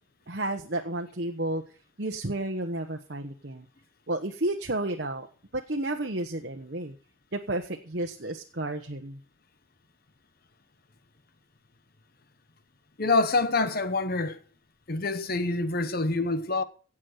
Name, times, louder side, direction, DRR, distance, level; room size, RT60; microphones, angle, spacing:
voice 1, 0.3-1.6 2.0-3.7 4.1-5.3 5.5-7.0 7.3-9.2, right 1 dB, 55° right, 1.2 m, -31 dB
voice 2, 13.0-14.4 14.9-16.6, left 3 dB, 50° left, 1.0 m, -26 dB
17.0 x 7.4 x 6.4 m
head